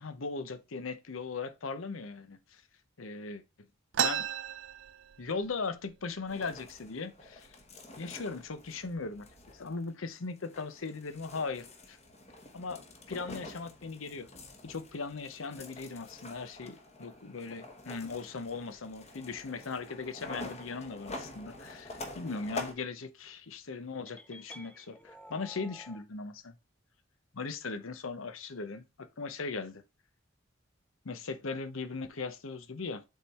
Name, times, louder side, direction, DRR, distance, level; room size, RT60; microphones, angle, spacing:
voice 1, 0.0-2.4 3.0-3.4 4.0-4.2 5.2-7.5 8.0-12.0 12.5-12.8 13.1-14.3 14.6-26.6 27.3-29.8 31.0-33.0, left 4 dB, 90° left, 0.8 m, -39 dB
sound 1, 3.9-5.6 5.9-6.0 6.3-6.9 7.5-7.6 8.3-8.5 9.0-9.4, right 9 dB, 75° right, 0.5 m, -33 dB
sound 2, 6.3-22.7, left 2 dB, 35° left, 1.1 m, -47 dB
sound 3, 24.1-26.0, left 1 dB, 5° left, 0.5 m, -51 dB
7.3 x 3.7 x 4.2 m
head